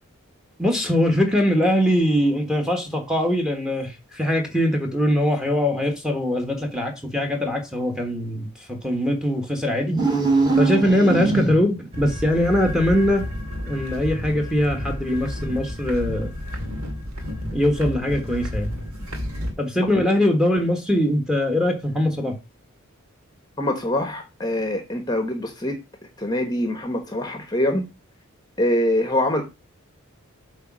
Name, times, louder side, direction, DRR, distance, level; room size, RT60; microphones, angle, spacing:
voice 1, 0.6-10.0 10.6-13.3 13.7-16.3 17.5-18.7 19.6-22.4, left 1 dB, 5° right, 1.3 m, -22 dB
sound 1, 9.8-11.9, right 3 dB, 20° right, 2.4 m, -21 dB
sound 2, 11.9-19.5, left 1 dB, 75° right, 2.2 m, -31 dB
voice 2, 23.6-25.8 26.2-27.8 28.6-29.4, left 1 dB, 15° left, 1.0 m, -24 dB
8.1 x 3.6 x 6.1 m
head